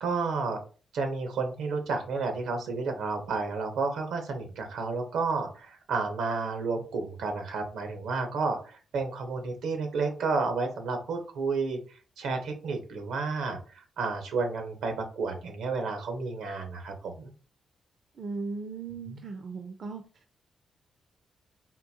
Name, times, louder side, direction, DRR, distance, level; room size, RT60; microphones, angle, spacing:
voice 1, 0.0-0.6 0.9-11.8 12.2-17.3 19.0-19.2, right 4 dB, 85° right, 5 dB, 0.7 m, -31 dB
voice 2, 18.2-20.0, right 4 dB, 55° right, 6 dB, 0.4 m, -37 dB
3.7 x 2.3 x 2.7 m, 0.37 s
cardioid pair, 80°, 0 cm